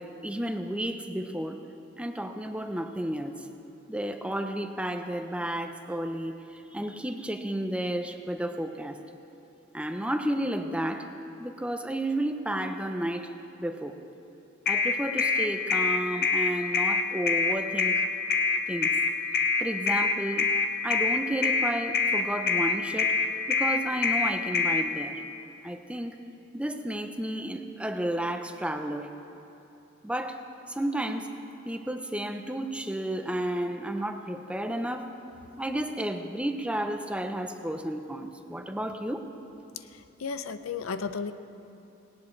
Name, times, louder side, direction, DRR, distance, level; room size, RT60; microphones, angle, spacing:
voice 1, 0.0-1.6 2.0-3.4 3.9-6.4 6.7-9.0 9.7-11.1 11.4-13.3 13.6-14.0 14.7-18.0 18.7-18.9 19.6-20.5 20.8-23.1 23.5-25.2 25.6-26.1 26.5-29.1 30.0-30.4 30.7-31.3 31.7-35.1 35.6-39.3, right 1 dB, 5° right, 6 dB, 0.6 m, -32 dB
sound 1, 14.7-24.8, left 4 dB, 50° left, 0.9 m, -24 dB
voice 2, 40.2-41.3, left 5 dB, 90° left, 11 dB, 0.6 m, -33 dB
19.0 x 18.0 x 3.2 m, 2.8 s
head